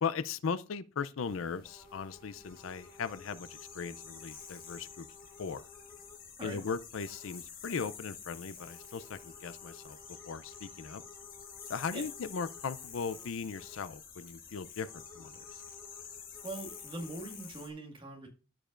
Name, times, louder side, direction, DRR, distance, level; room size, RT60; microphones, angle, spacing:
voice 1, 0.0-5.1 5.4-5.7 6.4-11.0 11.7-15.6, left 5 dB, 75° left, 0.5 m, -38 dB
sound 1, 1.2-17.7, left 7 dB, 45° left, 1.6 m, -49 dB
sound 2, 1.6-6.7 7.0-7.4 8.6-13.9 14.8-17.5, left 2 dB, 15° left, 1.4 m, -57 dB
voice 2, 16.4-18.3, right 2 dB, 25° right, 1.7 m, -42 dB
14.5 x 5.2 x 2.5 m
head